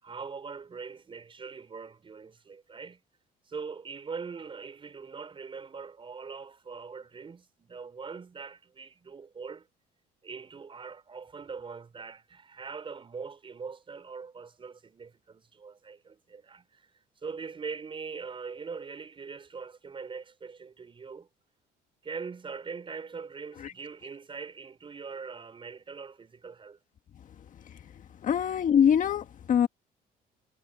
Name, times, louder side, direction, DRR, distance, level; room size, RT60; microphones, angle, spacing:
voice 1, 0.0-3.0 3.5-9.7 10.2-16.9 17.2-21.3 22.0-26.8, right 5 dB, 30° right, 4.7 m, -42 dB
voice 2, 28.2-29.7, left 8 dB, 50° left, 1.6 m, -23 dB
cardioid pair, 110°, 17 cm